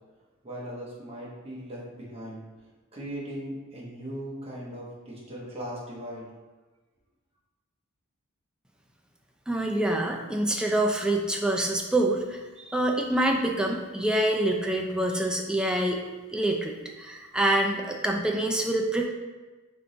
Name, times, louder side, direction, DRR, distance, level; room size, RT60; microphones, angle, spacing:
voice 1, 0.4-2.4 2.9-6.3, equal, 30° right, -6 dB, 1.2 m, -38 dB
voice 2, 9.5-16.0 16.3-19.0, right 1 dB, 5° right, 1 dB, 0.4 m, -26 dB
3.8 x 3.4 x 3.9 m, 1.2 s
head